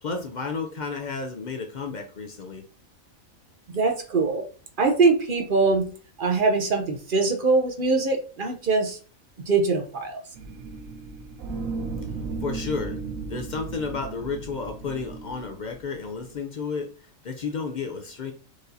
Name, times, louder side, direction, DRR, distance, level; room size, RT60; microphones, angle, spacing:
voice 1, 0.0-2.6 12.4-13.0 13.3-16.9 17.2-18.3, left 4 dB, 65° left, 0.4 m, -32 dB
voice 2, 3.7-4.4 4.8-5.9 6.2-9.0 9.5-10.2, right 3 dB, 45° right, 0.8 m, -22 dB
sound 1, 10.3-16.3, right 4 dB, 80° right, 1.0 m, -35 dB
4.7 x 2.7 x 3.9 m
omnidirectional pair, 1.5 m